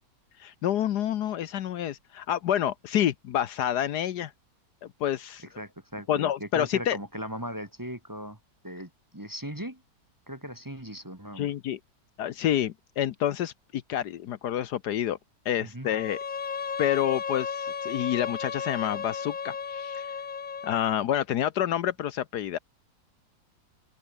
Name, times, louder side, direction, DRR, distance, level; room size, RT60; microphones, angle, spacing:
voice 1, 0.4-4.3 4.8-5.4 6.1-7.0 11.4-11.8 12.2-15.2 15.4-16.2 16.8-20.1 20.6-22.6, left 11 dB, 70° left, 1.3 m, -28 dB
voice 2, 5.6-8.4 8.6-9.8 10.3-11.5 15.6-15.9, equal, 10° right, 1.7 m, -38 dB
Bowed string instrument, 15.8-21.0, left 6 dB, 40° left, 0.8 m, -34 dB
omnidirectional pair, 1.9 m